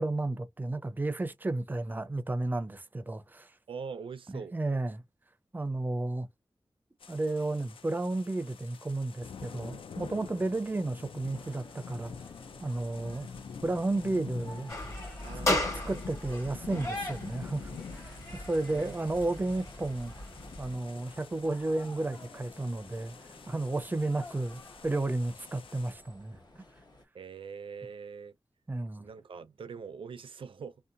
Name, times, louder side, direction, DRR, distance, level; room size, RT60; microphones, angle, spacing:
voice 1, 0.0-3.5 4.3-5.0 5.5-6.3 7.1-12.1 12.6-13.3 13.6-14.8 15.5-15.6 15.9-20.1 20.6-23.2 23.5-26.4 28.7-29.1, right 2 dB, 20° right, 0.4 m, -32 dB
voice 2, 3.7-4.5 15.2-15.5 15.8-16.0 18.6-19.0 27.1-28.3 29.0-30.8, right 5 dB, 85° right, 0.4 m, -43 dB
sound 1, 7.0-25.9, left 6 dB, 90° left, 0.3 m, -48 dB
sound 2, 11.3-27.0, left 1 dB, 55° left, 1.0 m, -53 dB
sound 3, 14.7-20.7, left 1 dB, 35° left, 1.3 m, -36 dB
2.7 x 2.1 x 2.5 m
wide cardioid pair, 85°, 9 cm